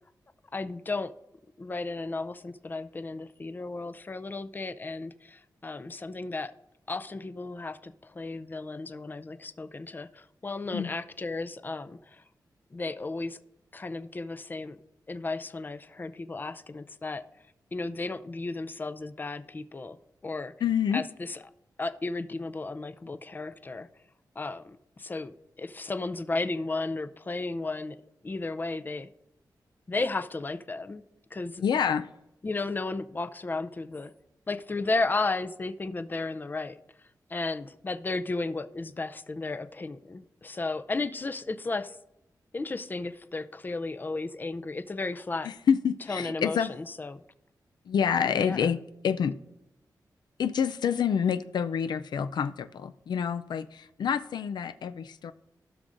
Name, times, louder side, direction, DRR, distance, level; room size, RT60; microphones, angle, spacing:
voice 1, 0.5-1.1 1.6-6.5 6.9-12.2 12.7-13.4 13.7-14.8 15.1-17.2 17.7-20.0 20.2-20.5 20.9-21.4 21.8-23.9 24.4-28.0 28.2-29.1 29.9-31.0 31.3-31.6 32.4-34.1 34.5-36.8 37.3-42.0 42.5-45.5 46.1-47.2 48.4-48.6, left 3 dB, 25° left, 0.5 m, -34 dB
voice 2, 20.6-21.0 31.6-32.1 45.4-46.7 47.9-49.4 50.4-55.3, left 7 dB, 90° left, 0.4 m, -27 dB
16.0 x 6.2 x 2.6 m
wide cardioid pair, 100°, 7 cm